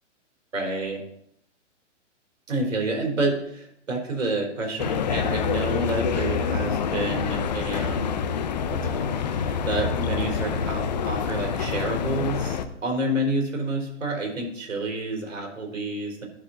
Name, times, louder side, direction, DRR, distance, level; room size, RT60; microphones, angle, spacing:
voice 1, 0.5-1.0 2.5-8.3 8.7-16.2, right 2 dB, 85° right, 1 dB, 3.5 m, -29 dB
sound 1, 4.8-12.7, left 6 dB, 35° left, 0.6 m, -27 dB
11.0 x 3.7 x 6.8 m, 0.71 s
hypercardioid pair, 160°, 37 cm